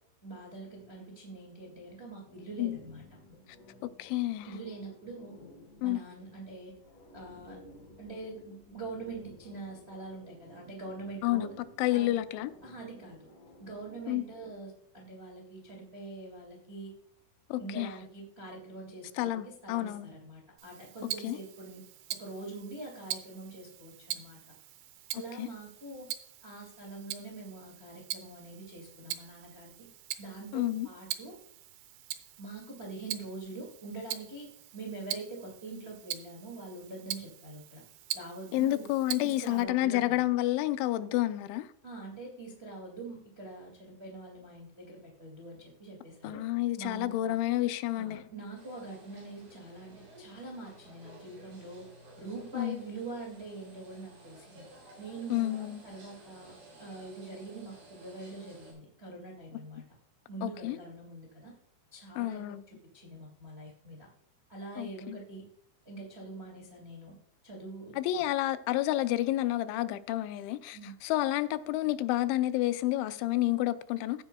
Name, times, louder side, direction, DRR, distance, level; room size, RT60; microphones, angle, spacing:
voice 1, 0.2-3.0 3.3-3.4 4.4-5.3 5.8-6.7 7.1-7.6 8.0-11.6 11.9-12.2 12.6-13.3 13.6-16.9 17.6-21.8 22.2-24.4 25.1-26.1 26.4-29.9 30.2-31.4 32.4-37.8 38.1-38.9 39.2-40.3 41.8-46.4 46.7-47.3 47.9-51.8 52.2-54.6 55.0-55.5 55.8-59.8 60.3-61.5 61.9-64.1 64.5-65.4 65.8-67.1 67.4-68.2 70.7-71.0, right 3 dB, 45° right, 0.8 m, -44 dB
sound 1, 2.3-14.5, left 1 dB, 65° left, 4.6 m, -56 dB
voice 2, 4.0-4.6 5.8-6.0 11.2-11.5 11.8-12.5 14.1-14.2 17.5-17.9 19.2-20.1 21.2-21.4 25.4-25.5 30.5-30.9 38.5-41.7 46.2-48.2 52.5-52.8 55.3-55.8 60.4-60.8 62.2-62.6 64.8-65.2 68.0-74.2, left 15 dB, 85° left, 2.9 m, -30 dB
Tick-tock, 20.6-39.6, right 13 dB, 85° right, 2.9 m, -43 dB
sound 2, 48.5-58.7, right 2 dB, 60° right, 6.8 m, -54 dB
16.5 x 8.9 x 2.3 m
omnidirectional pair, 5.3 m